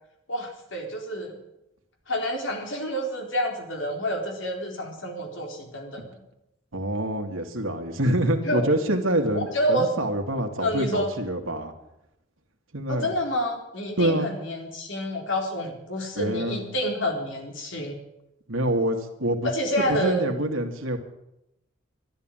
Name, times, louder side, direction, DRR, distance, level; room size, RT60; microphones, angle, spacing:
voice 1, 0.3-1.4 2.1-6.2 8.5-8.7 9.5-9.9 10.6-11.1 12.9-18.0 19.4-20.3, equal, 70° left, 2 dB, 3.8 m, -28 dB
voice 2, 6.7-11.7 12.7-13.1 14.0-14.3 16.2-16.7 18.5-19.5 19.8-21.0, right 1 dB, 85° right, 4 dB, 2.2 m, -26 dB
13.0 x 11.0 x 8.9 m, 0.84 s
head